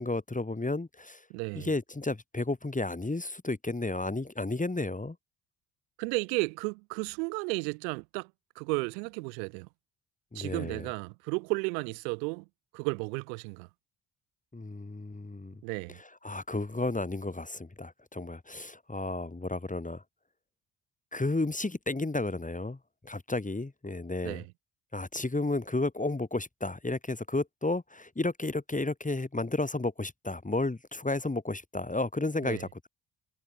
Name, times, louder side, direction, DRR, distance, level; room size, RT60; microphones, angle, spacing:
voice 1, 0.0-1.2 1.6-5.2 10.3-10.9 14.5-15.5 16.2-20.0 21.1-22.8 23.0-24.4 24.9-32.9, left 2 dB, 15° left, 2.4 m, -32 dB
voice 2, 1.3-1.7 6.0-8.3 8.6-9.7 10.3-12.5 12.7-13.7 15.6-16.0 24.2-24.5 32.4-32.7, right 31 dB, 85° right, 5.9 m, -33 dB
hypercardioid pair, 50°, 49 cm